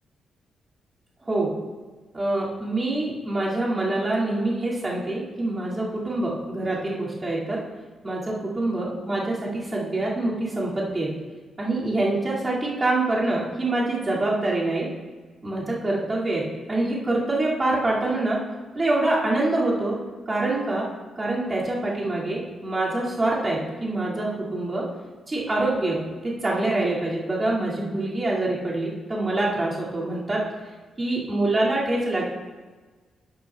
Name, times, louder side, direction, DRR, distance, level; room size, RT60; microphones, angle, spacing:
voice 1, 2.1-7.6 8.0-11.1 11.6-14.9 15.4-18.4 18.7-20.0 20.3-20.9 21.2-24.9 25.3-30.4 31.0-32.2, right 2 dB, 20° right, -6 dB, 2.4 m, -25 dB
12.0 x 9.4 x 2.4 m, 1.3 s
wide cardioid pair, 160°, 0 cm